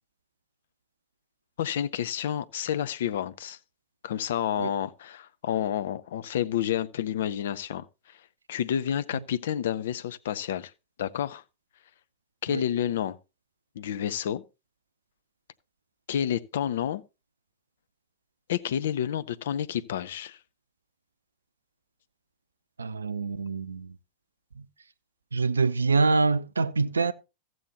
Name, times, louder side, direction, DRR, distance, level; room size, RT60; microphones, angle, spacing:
voice 1, 1.6-3.6 4.0-7.9 8.5-10.7 11.0-11.4 12.4-13.2 13.8-14.4 16.1-17.0 18.5-20.4, left 10 dB, 60° left, 0.5 m, -29 dB
voice 2, 22.8-23.9 25.3-27.1, right 4 dB, 75° right, 0.5 m, -25 dB
14.0 x 7.7 x 2.9 m
figure-of-eight pair, 90°, 0 cm